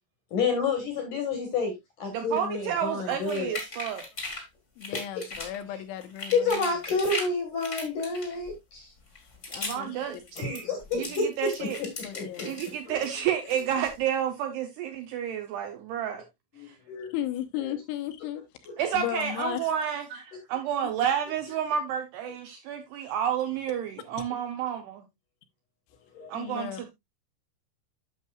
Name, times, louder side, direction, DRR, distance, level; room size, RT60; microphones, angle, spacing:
voice 1, 0.3-3.5 4.9-5.3 5.7-5.8 6.3-8.9 10.4-11.5 11.8-13.0 13.5-13.6 16.5-17.1 17.5-17.8 18.7-18.8 26.1-26.5, left 4 dB, 65° left, 2.1 m, -30 dB
voice 2, 2.1-4.1 9.7-10.1 10.4-10.6 10.9-11.1 11.4-11.8 12.4-16.2 16.7-16.8 18.8-25.0 26.3-26.9, right 9 dB, 80° right, 2.4 m, -30 dB
sound 1, 3.1-4.4 4.8-5.6 6.0-7.3 7.6-8.6 9.1-9.8 10.1-12.7 13.0-13.9, left 2 dB, 35° left, 1.1 m, -38 dB
voice 3, 4.8-6.6 9.5-9.9 10.4-10.6 10.9-11.0 12.0-12.6 17.1-18.4 18.9-19.7 20.8-20.9 26.3-26.8, left 12 dB, 80° left, 3.1 m, -35 dB
11.0 x 6.6 x 2.3 m
omnidirectional pair, 5.7 m